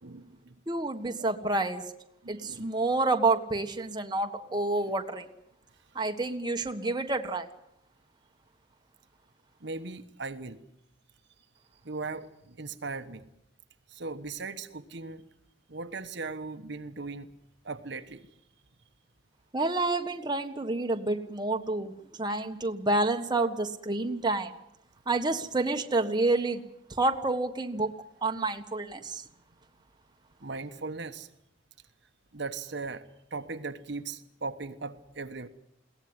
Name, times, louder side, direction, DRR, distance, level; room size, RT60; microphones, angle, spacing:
voice 1, 0.0-0.6 1.4-1.5 2.2-3.0 6.8-7.0 9.6-10.6 11.8-13.2 13.9-15.2 15.7-17.3 17.6-18.3 30.4-31.3 32.3-35.5, right 3 dB, 60° right, 8 dB, 1.3 m, -38 dB
voice 2, 0.7-1.8 2.3-5.3 5.9-7.5 19.5-21.9 22.2-24.5 25.1-26.6 26.9-27.9 28.2-29.2, right 2 dB, 20° right, 5 dB, 1.4 m, -28 dB
22.0 x 17.5 x 9.7 m, 0.78 s
head